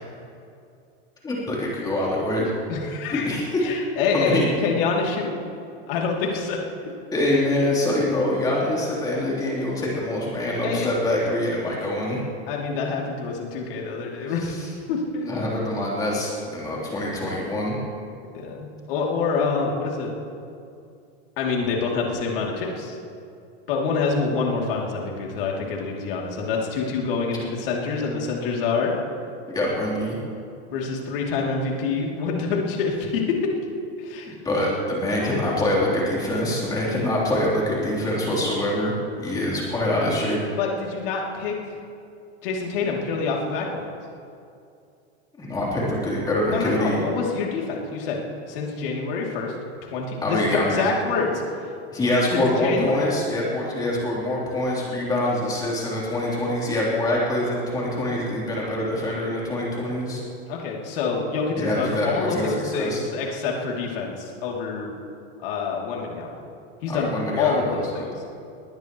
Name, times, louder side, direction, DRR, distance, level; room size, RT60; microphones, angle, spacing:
voice 1, 1.2-2.5 3.1-3.6 4.1-4.5 7.1-12.2 14.4-14.7 15.3-17.7 29.5-30.2 34.4-38.9 39.2-40.4 45.4-47.0 50.2-50.9 51.9-60.2 61.6-63.0 66.9-68.1, left 1 dB, 10° left, -5 dB, 3.5 m, -25 dB
voice 2, 2.7-3.3 3.6-5.3 5.9-6.6 10.6-11.0 12.5-14.6 14.9-15.4 18.3-20.1 21.4-23.0 23.7-28.9 30.7-33.4 34.0-34.4 35.1-35.5 40.6-41.8 42.4-43.9 46.5-48.2 48.5-49.5 49.9-51.3 52.3-53.1 60.5-64.9 65.4-66.3 66.8-67.1 67.4-68.1, left 4 dB, 60° left, -1 dB, 2.9 m, -26 dB
20.0 x 19.5 x 3.1 m, 2.5 s
supercardioid pair, 170°, 32 cm